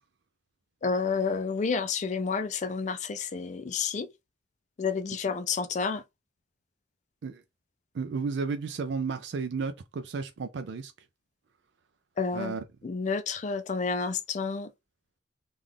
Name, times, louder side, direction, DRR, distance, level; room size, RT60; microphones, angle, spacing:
voice 1, 0.8-4.1 4.8-6.0 12.2-12.6 12.8-14.7, left 5 dB, 40° left, 0.4 m, -30 dB
voice 2, 7.9-10.9 12.3-12.6, right 4 dB, 70° right, 0.4 m, -33 dB
3.7 x 2.4 x 3.2 m
head